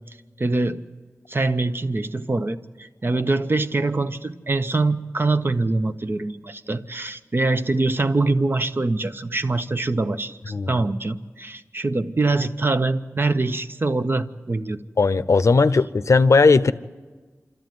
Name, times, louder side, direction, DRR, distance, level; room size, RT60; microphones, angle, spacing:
voice 1, 0.1-0.8 1.3-14.8, right 2 dB, 45° right, 0.8 m, -24 dB
voice 2, 15.0-16.7, left 4 dB, 70° left, 0.6 m, -17 dB
26.5 x 13.0 x 9.3 m
wide cardioid pair, 85°, 5 cm